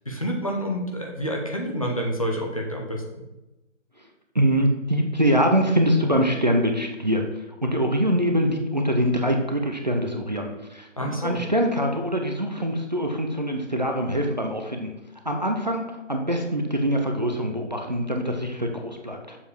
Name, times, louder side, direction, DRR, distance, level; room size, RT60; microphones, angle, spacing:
voice 1, 0.1-3.2 11.0-11.4, equal, 30° left, 0 dB, 0.8 m, -28 dB
voice 2, 4.3-7.2 7.6-14.9 15.2-19.4, equal, 35° right, 3 dB, 0.6 m, -24 dB
7.0 x 4.6 x 5.0 m, 0.99 s
figure-of-eight pair, 165°, 38 cm